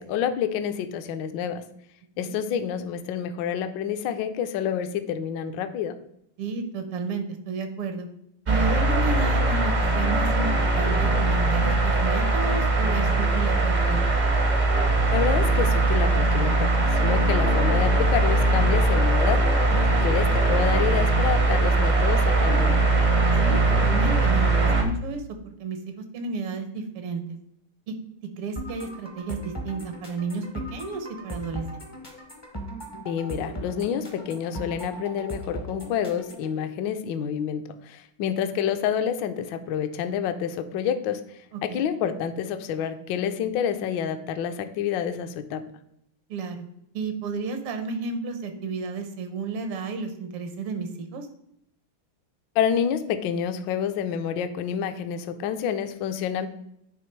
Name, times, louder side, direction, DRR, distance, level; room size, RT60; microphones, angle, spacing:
voice 1, 0.0-1.6 2.2-5.9 15.1-19.4 20.0-22.9 33.1-41.2 41.6-45.6 52.6-56.5, left 8 dB, 70° left, 9 dB, 1.1 m, -28 dB
voice 2, 6.4-8.1 8.5-14.2 19.9-20.0 23.4-27.2 27.9-28.0 28.4-30.4 30.7-31.9 41.5-41.9 46.3-46.7 46.9-51.3, right 4 dB, 80° right, 7 dB, 1.8 m, -32 dB
sound 1, 8.5-24.8, right 2 dB, 45° right, 0.5 m, -21 dB
sound 2, 28.6-36.5, equal, 30° left, 0.5 m, -38 dB
9.4 x 3.3 x 4.5 m, 0.75 s
omnidirectional pair, 2.4 m